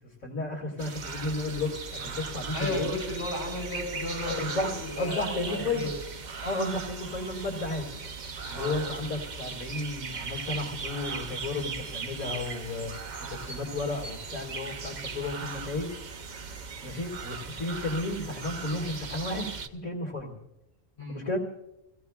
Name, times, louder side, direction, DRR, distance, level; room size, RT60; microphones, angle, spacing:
voice 1, 0.2-2.9 4.2-6.0 6.4-7.9 8.5-12.9 13.2-15.9 16.8-20.4 21.1-21.4, left 2 dB, 90° left, -4 dB, 2.7 m, -33 dB
sound 1, 0.8-19.7, right 5 dB, 40° right, 0.7 m, -38 dB
voice 2, 2.5-5.9 8.5-8.8 21.0-21.2, left 2 dB, 45° left, -2 dB, 4.4 m, -34 dB
25.0 x 16.5 x 2.4 m, 0.92 s
omnidirectional pair, 1.4 m